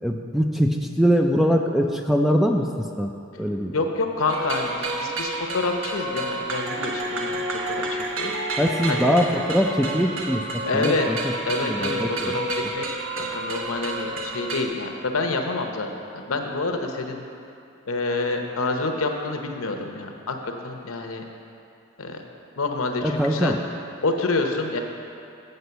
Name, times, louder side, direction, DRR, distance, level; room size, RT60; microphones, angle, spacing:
voice 1, 0.0-3.1 3.4-3.7 8.6-11.3 11.6-12.3 23.0-23.6, equal, ahead, 2 dB, 0.3 m, -22 dB
voice 2, 3.7-8.3 8.9-9.1 10.7-11.1 11.4-12.9 13.1-17.2 17.9-21.2 22.0-22.2 22.6-23.6 24.0-24.8, left 3 dB, 85° left, 3 dB, 0.8 m, -27 dB
sound 1, 4.3-14.7, right 2 dB, 75° right, 0.9 m, -30 dB
7.9 x 5.3 x 6.8 m, 2.6 s
head